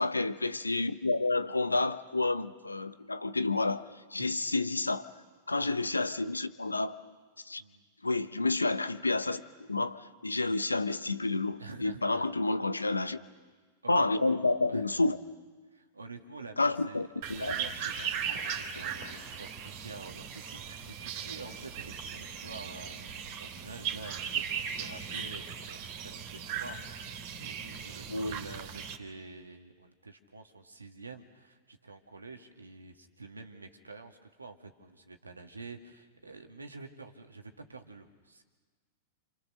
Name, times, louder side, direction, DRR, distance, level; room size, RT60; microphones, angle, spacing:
voice 1, 0.0-3.8 4.1-5.1 5.5-7.0 7.5-7.6 8.0-9.4 9.7-13.2 13.9-15.2 16.6-17.5 28.1-28.4, left 2 dB, 90° left, 14 dB, 0.9 m, -29 dB
voice 2, 11.6-12.2 12.8-12.9 13.8-15.1 15.7-17.0 17.3-38.4, right 3 dB, 85° right, 5 dB, 2.2 m, -48 dB
sound 1, 17.2-29.0, right 8 dB, 50° right, 3.1 m, -38 dB
28.5 x 28.0 x 6.6 m, 1.4 s
figure-of-eight pair, 100°, 0 cm